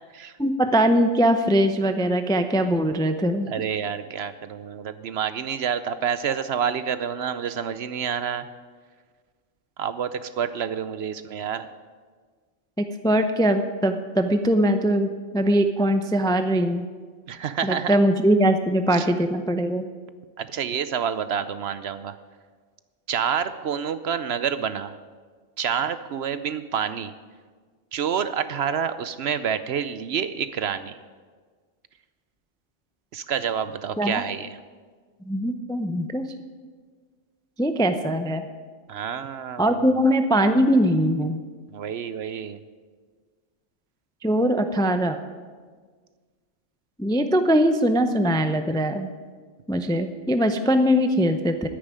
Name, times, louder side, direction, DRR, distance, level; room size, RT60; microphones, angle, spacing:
voice 1, 0.4-3.5 12.8-16.8 17.6-19.9 34.0-34.2 35.3-36.3 37.6-38.4 39.6-41.4 44.2-45.2 47.0-49.1 49.7-51.7, equal, 5° left, 8 dB, 0.4 m, -21 dB
voice 2, 3.5-8.5 9.8-11.7 17.3-17.9 18.9-19.1 20.4-22.1 23.1-24.9 25.6-27.1 27.9-31.0 33.1-34.6 38.9-39.8 41.7-42.6, right 7 dB, 60° right, 13 dB, 0.8 m, -28 dB
9.8 x 9.7 x 9.6 m, 1.5 s
omnidirectional pair, 1.3 m